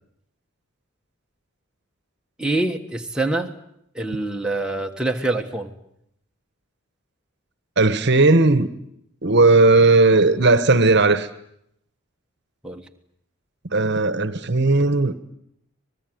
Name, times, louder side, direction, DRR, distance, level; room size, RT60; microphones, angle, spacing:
voice 1, 2.4-3.5 3.9-5.7 12.6-12.8, right 2 dB, 5° right, 1.5 m, -25 dB
voice 2, 7.8-8.7 9.2-11.3 13.6-15.1, right 3 dB, 50° right, 1.3 m, -16 dB
25.0 x 20.5 x 9.4 m
head